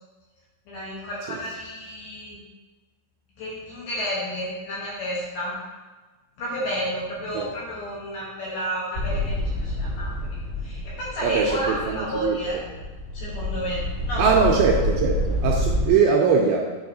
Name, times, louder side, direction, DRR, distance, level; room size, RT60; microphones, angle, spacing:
voice 1, 0.7-2.4 3.4-5.6 6.4-10.1 10.6-12.6 13.1-14.4, equal, 70° left, -6 dB, 2.5 m, -31 dB
sound 1, 8.9-15.9, left 1 dB, 90° left, 1.0 m, -28 dB
voice 2, 11.2-12.4 14.2-16.8, right 5 dB, 85° right, 0 dB, 2.6 m, -21 dB
10.0 x 4.8 x 2.7 m, 1.3 s
omnidirectional pair, 5.6 m